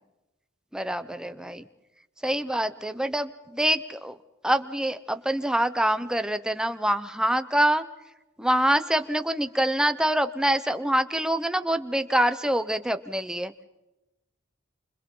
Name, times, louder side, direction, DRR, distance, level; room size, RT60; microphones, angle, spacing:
voice 1, 0.7-1.6 2.2-4.2 4.4-7.8 8.4-13.6, right 1 dB, 5° right, 9 dB, 0.8 m, -25 dB
28.5 x 26.0 x 3.9 m, 0.99 s
head